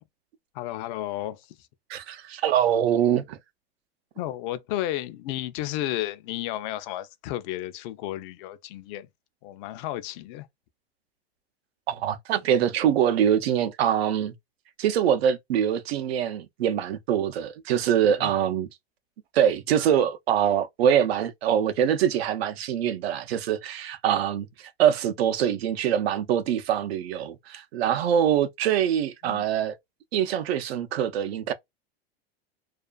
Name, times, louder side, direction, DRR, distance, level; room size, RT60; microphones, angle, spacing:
voice 1, 0.5-1.7 4.2-9.1 9.4-10.5 18.2-18.3 29.2-29.4, left 14 dB, 55° left, 0.5 m, -33 dB
voice 2, 1.9-3.4 11.9-14.3 14.8-18.7 19.3-29.8 30.1-31.5, right 9 dB, 90° right, 0.5 m, -24 dB
2.4 x 2.4 x 2.3 m
hypercardioid pair, 110°, 30 cm